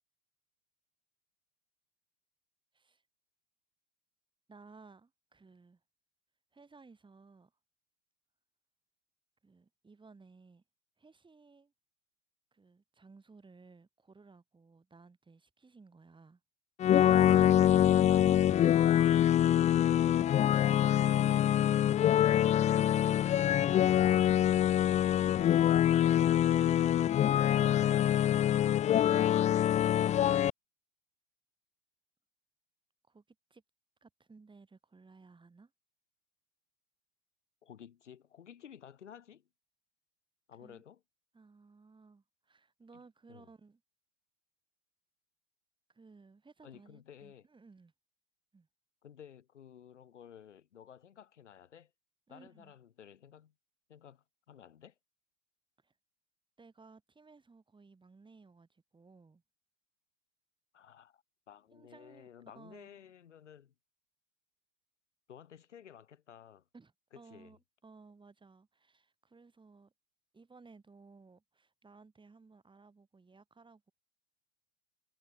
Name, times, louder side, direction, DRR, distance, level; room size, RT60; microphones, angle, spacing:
voice 1, 4.5-5.8 6.5-7.5 9.4-10.6 11.0-11.7 12.5-16.4 19.7-20.4 22.2-24.8 25.5-25.6 25.9-26.0 33.1-33.2 33.5-33.6 34.0-35.7 40.6-40.8 41.3-43.8 45.9-47.9 48.5-48.7 52.3-52.7 55.8-55.9 56.6-59.4 61.7-62.3 62.5-63.0 66.7-69.9 70.3-73.9, right 4 dB, 15° right, 7.4 m, -58 dB
sound 1, 16.8-30.5, left 11 dB, 20° left, 0.5 m, -25 dB
voice 2, 18.1-18.6 37.6-39.5 40.5-41.0 42.9-43.0 43.3-43.5 46.6-47.5 49.0-51.9 52.3-53.5 53.9-55.0 60.7-63.7 65.3-66.7 67.1-67.6, left 9 dB, 75° left, 7.3 m, -54 dB
hypercardioid pair, 90°, 36 cm